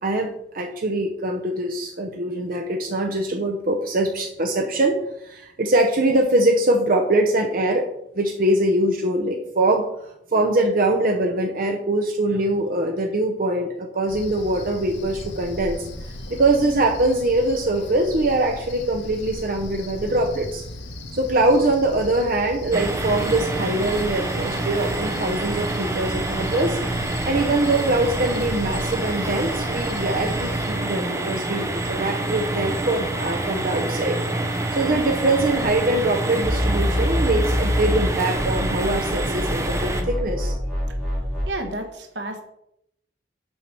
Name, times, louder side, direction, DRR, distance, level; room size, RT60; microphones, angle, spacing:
voice 1, 0.0-7.9 8.2-15.8 16.3-20.6 21.1-34.2 34.7-40.5, right 2 dB, 50° right, 2 dB, 0.8 m, -23 dB
Cricket, 14.1-30.7, left 1 dB, 80° left, 1.3 m, -37 dB
sound 1, 22.7-40.0, right 2 dB, 15° right, 0.9 m, -27 dB
sound 2, 36.4-38.1 38.3-41.5, left 1 dB, ahead, 3.0 m, -25 dB
voice 2, 41.4-42.4, right 1 dB, 80° right, 5 dB, 1.4 m, -31 dB
7.2 x 4.7 x 6.0 m, 0.79 s
head